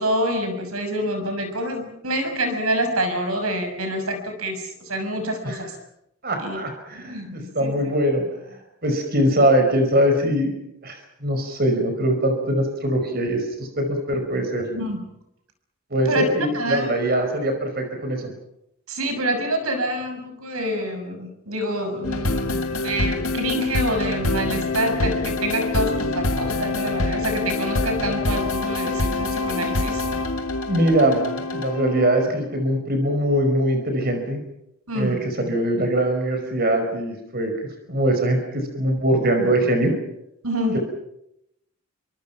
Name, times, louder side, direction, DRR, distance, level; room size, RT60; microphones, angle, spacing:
voice 1, 0.0-5.8 6.4-6.6 6.9-7.9 14.7-15.0 16.0-16.3 16.5-17.0 18.9-30.1 34.9-35.2 40.4-40.8, right 1 dB, 80° right, 7 dB, 6.2 m, -27 dB
voice 2, 6.2-10.5 10.8-14.7 15.9-18.3 30.7-34.4 34.9-37.5 37.9-39.9 40.7-40.8, right 1 dB, 45° right, 5 dB, 5.3 m, -22 dB
sound 1, 22.0-32.4, left 2 dB, 75° left, 2.0 m, -25 dB
29.5 x 24.5 x 5.9 m, 0.80 s
head